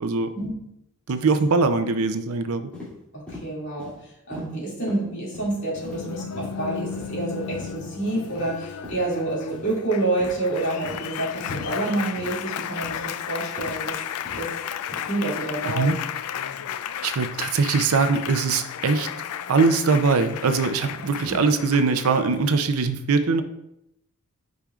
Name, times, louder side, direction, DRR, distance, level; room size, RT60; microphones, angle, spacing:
voice 1, 0.0-0.3 1.1-2.7 15.6-16.0 17.0-19.1 19.5-23.4, right 4 dB, 70° right, 9 dB, 0.5 m, -22 dB
sound 1, 2.7-2.9 3.3-3.5 3.8-4.0 4.3-4.5 4.8-5.0 5.3-5.5 5.8-6.0 6.3-6.5 6.9-7.1 7.5-7.7 8.2-8.4 8.8-9.0 9.5-9.7 10.2-10.4 10.8-11.0 11.5-11.7 12.2-12.3 12.8-13.0 13.6-13.8 14.3-14.4 14.9-15.0, left 2 dB, 5° left, 2.5 m, -40 dB
voice 2, 3.1-3.9 4.3-14.0 14.4-14.5 15.1-15.9 21.2-21.4, right 2 dB, 55° left, -5 dB, 2.3 m, -28 dB
Applause, 5.8-22.7, left 9 dB, 75° left, 0.3 m, -34 dB
8.7 x 5.1 x 2.4 m, 0.83 s
head